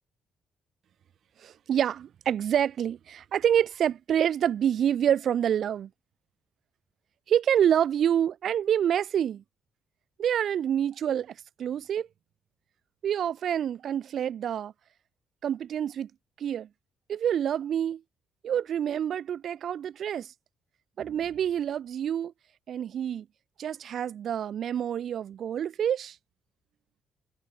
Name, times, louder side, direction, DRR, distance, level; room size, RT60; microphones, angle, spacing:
voice 1, 1.4-5.9 7.3-9.4 10.2-12.1 13.0-14.7 15.4-16.1 16.4-16.7 17.1-18.0 18.4-20.3 21.0-22.3 22.7-23.2 23.6-26.1, right 9 dB, 65° right, 1.3 m, -27 dB
cardioid pair, 90°, 0 cm